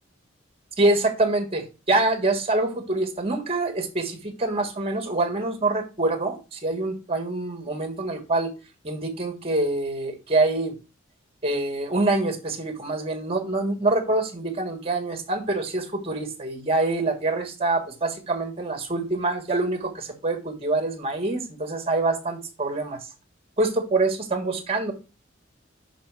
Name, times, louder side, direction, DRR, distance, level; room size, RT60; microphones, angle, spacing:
voice 1, 0.8-8.5 8.8-10.7 11.4-23.0 23.6-24.9, right 2 dB, 30° right, 6 dB, 1.4 m, -25 dB
6.2 x 4.8 x 4.6 m, 0.31 s
head